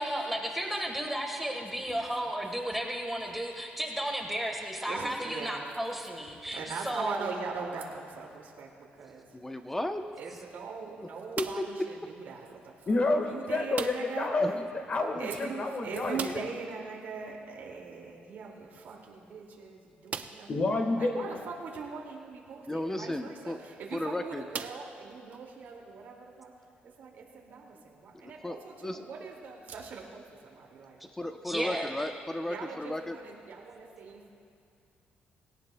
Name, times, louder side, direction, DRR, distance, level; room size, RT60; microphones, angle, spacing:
voice 1, 0.0-6.6 6.8-7.3 31.5-32.1, right 1 dB, 5° right, 2 dB, 1.4 m, -33 dB
voice 2, 1.7-2.3 4.9-5.7 6.2-9.4 10.2-14.3 15.2-20.6 21.0-26.6 26.8-31.0 32.4-34.3, right 5 dB, 65° right, -2 dB, 2.3 m, -41 dB
voice 3, 9.3-10.0 11.4-11.6 14.4-14.5 22.7-23.6 23.9-24.4 28.2-28.6 28.8-29.0 31.2-33.2, left 1 dB, 10° left, 6 dB, 0.8 m, -34 dB
sound 1, 11.3-11.9 13.7-14.3 14.5-14.6 15.0-15.1 16.1-16.7 18.4-18.5 19.2-19.3 20.1-20.6 21.3-21.4 23.4-23.6 24.5-25.4, right 6 dB, 50° right, 0.6 m, -39 dB
voice 4, 12.9-16.4 20.5-21.2 23.0-23.1, left 2 dB, 40° left, 4 dB, 1.6 m, -29 dB
20.5 x 17.5 x 2.3 m, 2.6 s
cardioid pair, 115°, 4 cm